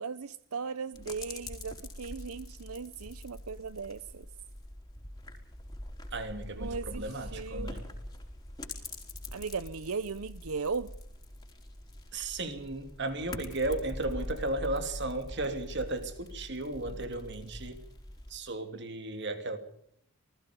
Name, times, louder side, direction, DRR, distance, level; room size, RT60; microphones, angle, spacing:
voice 1, 0.0-4.3 6.5-7.7 9.3-10.9, right 5 dB, 85° right, 0.7 m, -37 dB
sound 1, 0.9-18.4, left 1 dB, 20° left, 4.5 m, -44 dB
voice 2, 6.1-7.8 12.1-17.8 18.3-19.6, right 2 dB, 55° right, 2.9 m, -35 dB
28.0 x 20.0 x 5.2 m
head